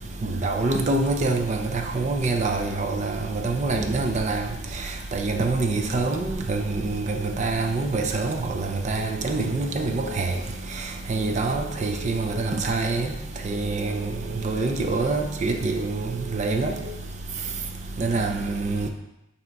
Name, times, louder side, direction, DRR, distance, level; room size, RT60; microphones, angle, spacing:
voice 1, 0.2-4.5 5.1-10.3 11.1-13.1 13.4-14.1 14.4-16.8 18.0-18.9, right 3 dB, 35° right, 4 dB, 0.5 m, -25 dB
Telephone, 9.0-10.1 11.2-12.3 13.5-14.6 15.8-16.9, right 3 dB, 65° right, 1.0 m, -41 dB
7.5 x 2.9 x 4.6 m, 0.91 s
head